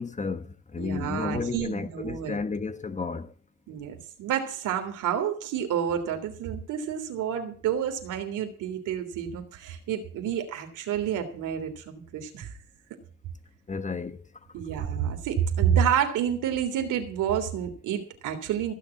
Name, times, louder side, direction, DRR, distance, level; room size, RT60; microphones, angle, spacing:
voice 1, 0.0-3.3 13.7-14.3, left 4 dB, 25° left, 1.2 m, -32 dB
voice 2, 0.8-2.4 3.7-12.5 14.5-18.7, right 9 dB, 90° right, 3.2 m, -29 dB
15.5 x 7.1 x 8.4 m
cardioid pair, 90°, 30 cm